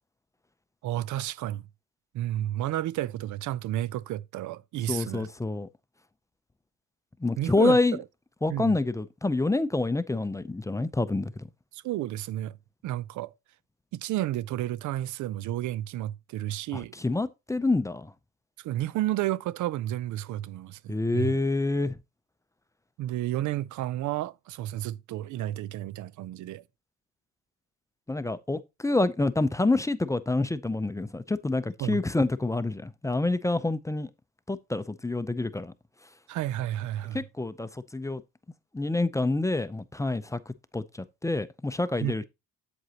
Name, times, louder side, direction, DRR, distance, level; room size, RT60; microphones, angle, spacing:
voice 1, 0.8-1.6 2.1-5.3 7.4-7.8 8.5-8.8 11.7-12.6 12.8-13.3 13.9-16.9 18.6-21.4 23.0-26.6 31.8-32.0 36.3-37.2 42.0-42.2, right 14 dB, 75° right, 0.5 m, -31 dB
voice 2, 4.9-5.7 7.2-8.0 8.4-11.4 16.7-18.1 20.9-22.0 28.1-34.1 34.5-35.7 37.1-38.2 38.7-42.2, left 2 dB, 10° left, 0.5 m, -27 dB
8.0 x 7.8 x 2.9 m
cardioid pair, 90°, 30 cm